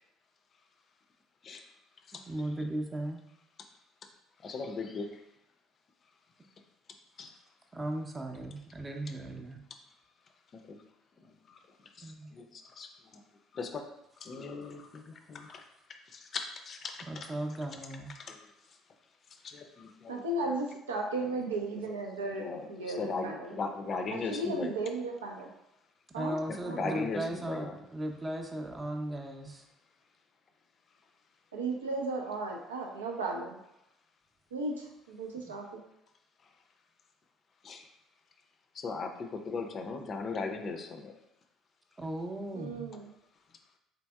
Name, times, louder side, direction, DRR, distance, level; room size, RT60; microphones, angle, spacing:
voice 1, 2.3-3.2 7.7-9.6 12.0-12.3 17.1-18.1 26.1-29.6 35.4-35.5 42.0-42.9, right 1 dB, 20° right, 4 dB, 0.6 m, -37 dB
voice 2, 4.4-5.2 7.2-7.3 10.7-10.8 11.2-11.6 12.0-13.2 13.5-13.8 14.2-15.6 16.1-17.3 18.1-18.5 19.4-20.2 21.3-21.4 21.9-22.0 22.3-24.7 26.5-27.7 37.6-37.9 38.7-41.1, left 4 dB, 40° left, 5 dB, 0.5 m, -38 dB
voice 3, 20.1-23.5 24.1-25.5 26.1-26.3 26.6-27.0 31.5-33.6 34.5-35.8 42.5-43.1, right 2 dB, 80° right, 1 dB, 0.5 m, -35 dB
3.9 x 3.3 x 2.3 m, 0.84 s
figure-of-eight pair, 55°, 0 cm